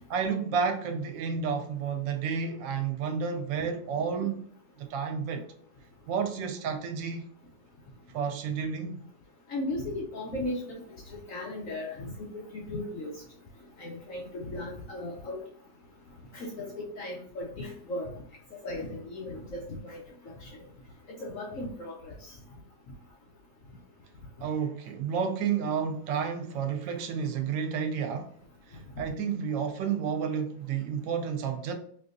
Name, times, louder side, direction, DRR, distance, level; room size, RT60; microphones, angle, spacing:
voice 1, 0.1-4.4 4.8-5.5 6.1-7.3 8.1-9.0 24.4-28.3 28.7-31.7, right 6 dB, 90° right, 1.3 m, -31 dB
voice 2, 9.5-10.8 11.1-13.1 13.8-15.4 16.3-18.1 18.6-20.0 20.3-20.5 21.2-22.3 29.0-29.1, left 1 dB, 75° left, 0.7 m, -36 dB
4.2 x 2.6 x 2.5 m
omnidirectional pair, 1.9 m